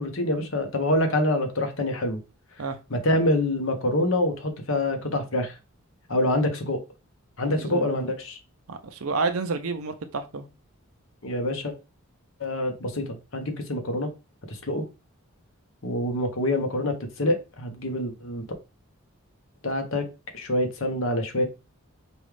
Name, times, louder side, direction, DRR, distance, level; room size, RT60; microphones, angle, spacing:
voice 1, 0.0-2.2 2.9-5.5 6.1-6.8 7.4-8.4 11.2-11.7 12.4-14.1 14.5-14.8 15.8-18.4 19.6-20.1 20.3-21.4, left 1 dB, 65° left, 1.0 m, -26 dB
voice 2, 7.5-8.0 8.7-10.5, right 4 dB, 75° right, 0.6 m, -30 dB
5.1 x 2.4 x 3.3 m
head